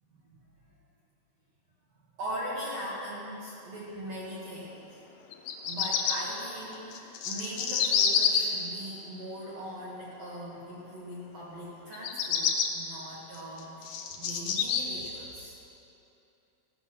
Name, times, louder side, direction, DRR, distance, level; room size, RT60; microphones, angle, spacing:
voice 1, 2.2-5.0 5.6-15.6, equal, 55° right, -6 dB, 2.0 m, -40 dB
Bird vocalization bird call bird song, 5.3-6.1 6.9-8.4 11.9-12.7 13.3-14.8, left 8 dB, 75° left, 2.3 m, -27 dB
15.0 x 8.0 x 5.8 m, 2.8 s
omnidirectional pair, 4.8 m